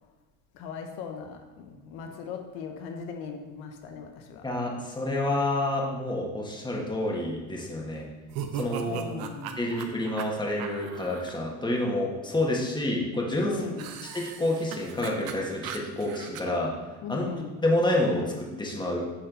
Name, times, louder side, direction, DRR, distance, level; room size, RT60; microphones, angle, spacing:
voice 1, 0.5-4.4 8.9-9.7 13.4-14.0 17.0-17.6, left 5 dB, 80° left, 4 dB, 0.9 m, -39 dB
voice 2, 4.4-8.1 8.5-9.1 9.6-13.6 14.1-16.7 17.1-17.2 17.6-19.1, left 1 dB, 10° left, -2 dB, 1.6 m, -28 dB
sound 1, 8.3-11.3 13.8-16.4, right 8 dB, 75° right, 0.8 m, -38 dB
8.3 x 4.2 x 4.0 m, 1.2 s
supercardioid pair, 95°, 36 cm